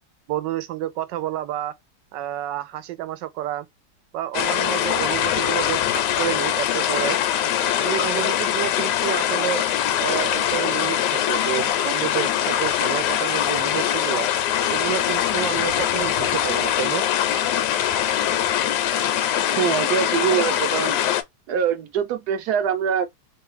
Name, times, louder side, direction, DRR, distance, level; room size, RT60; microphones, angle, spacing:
voice 1, 0.3-1.8 2.1-3.7 4.1-7.2 7.6-9.6 10.0-14.3 14.7-17.0, right 13 dB, 90° right, 1.3 m, -29 dB
sound 1, 4.3-21.2, left 11 dB, 75° left, 1.1 m, -22 dB
voice 2, 19.6-21.0 21.5-23.1, right 8 dB, 70° right, 1.0 m, -23 dB
3.0 x 2.3 x 3.1 m
omnidirectional pair, 1.9 m